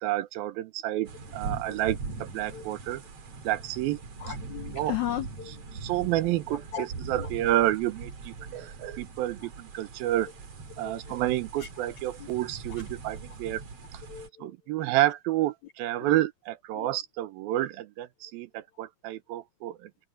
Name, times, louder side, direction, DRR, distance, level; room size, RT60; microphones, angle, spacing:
voice 1, 0.0-3.0 3.4-4.0 4.7-4.9 5.8-10.3 10.8-13.6 14.4-19.9, right 15 dB, 80° right, 2.7 m, -29 dB
sound 1, 1.0-14.3, right 4 dB, 45° right, 3.3 m, -41 dB
voice 2, 4.2-5.7 6.7-6.9 7.2-7.3 8.4-8.7 9.4-9.5 10.8-11.2 11.6-11.9 12.2-12.3 12.7-12.8 14.1-14.5 16.0-16.2 16.7-16.9, left 12 dB, 70° left, 1.9 m, -37 dB
omnidirectional pair, 4.2 m